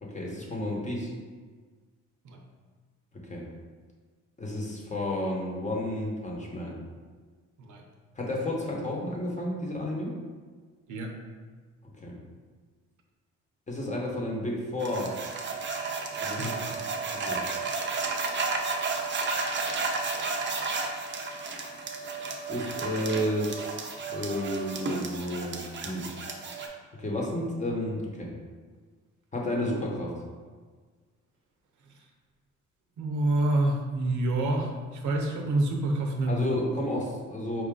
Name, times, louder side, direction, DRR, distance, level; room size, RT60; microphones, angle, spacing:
voice 1, 0.0-1.1 3.1-3.5 4.4-6.8 8.1-10.1 12.0-12.2 13.7-15.1 16.2-16.6 17.1-17.5 22.5-23.8 24.1-26.1 26.9-28.3 29.3-30.1 36.3-37.6, left 1 dB, 25° left, -2 dB, 1.0 m, -32 dB
sound 1, 14.8-26.7, right 4 dB, 40° right, 0.6 m, -32 dB
voice 2, 33.0-36.5, right 2 dB, 75° right, 2 dB, 0.7 m, -27 dB
4.7 x 2.4 x 3.7 m, 1.5 s
cardioid pair, 90°, 30 cm